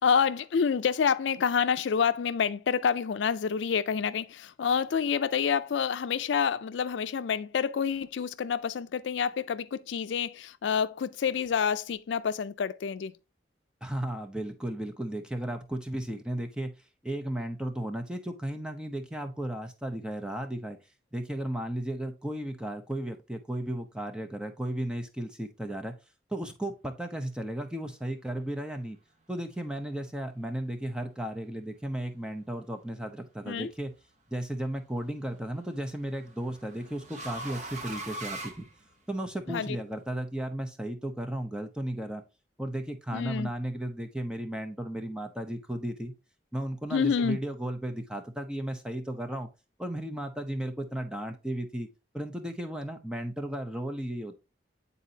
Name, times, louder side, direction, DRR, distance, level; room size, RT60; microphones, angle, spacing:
voice 1, 0.0-13.1 33.5-33.7 39.5-39.8 43.1-43.5 46.9-47.4, left 6 dB, 80° left, 0.4 m, -28 dB
voice 2, 13.8-16.7 17.0-20.8 21.1-26.0 26.3-29.0 29.3-33.9 34.3-38.7 39.1-42.2 42.6-46.1 46.5-49.5 49.8-51.9 52.1-54.4, right 1 dB, 5° right, 0.7 m, -34 dB
sound 1, 33.5-33.9 35.4-39.4, right 2 dB, 40° right, 1.0 m, -41 dB
9.3 x 4.0 x 2.7 m
head